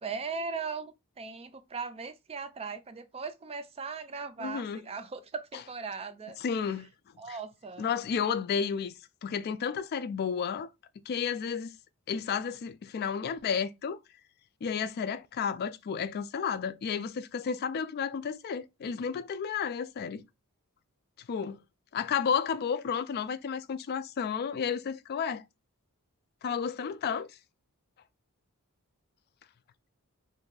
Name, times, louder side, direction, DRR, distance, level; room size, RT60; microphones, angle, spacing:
voice 1, 0.0-6.4 7.2-7.9, right 5 dB, 25° right, 0.4 m, -38 dB
voice 2, 4.4-4.8 6.4-6.9 7.3-7.4 7.8-10.7 11.1-11.7 12.1-14.0 14.6-20.2 21.2-21.6 21.9-25.4 26.4-27.3, left 6 dB, 45° left, 0.3 m, -32 dB
2.6 x 2.3 x 3.9 m
head